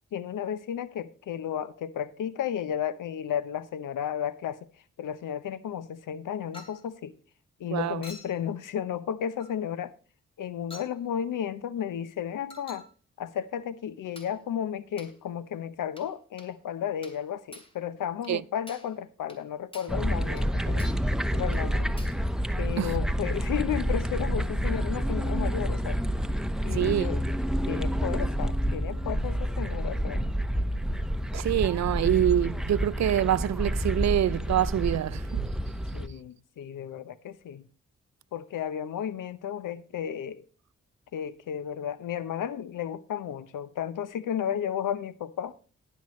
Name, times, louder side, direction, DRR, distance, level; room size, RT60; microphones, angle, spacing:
voice 1, 0.1-4.6 5.0-7.1 7.6-9.9 10.4-12.8 13.2-20.9 21.3-21.9 22.6-26.0 26.6-27.2 27.7-30.2 35.9-37.6 38.3-40.4 41.1-45.5, left 9 dB, 75° left, 0.8 m, -33 dB
Chink clink, 6.5-6.9 8.0-8.4 9.4-9.6 10.7-11.0 12.5-12.9 14.2-14.4 15.0-15.2 16.0-16.1 16.4-16.5 17.0-17.3 17.5-17.8 18.2-18.4 18.7-19.0 19.3-19.4 19.7-20.0 20.4-20.5 20.8-21.1 21.5-21.6 22.0-22.2, left 1 dB, 15° left, 2.9 m, -48 dB
voice 2, 7.7-8.0 18.3-18.4 22.8-23.0 26.7-27.1 31.3-35.5, right 11 dB, 60° right, 0.5 m, -26 dB
sound 1, 19.9-36.1, equal, ahead, 1.0 m, -28 dB
18.5 x 6.9 x 3.1 m
supercardioid pair, 40°, 32 cm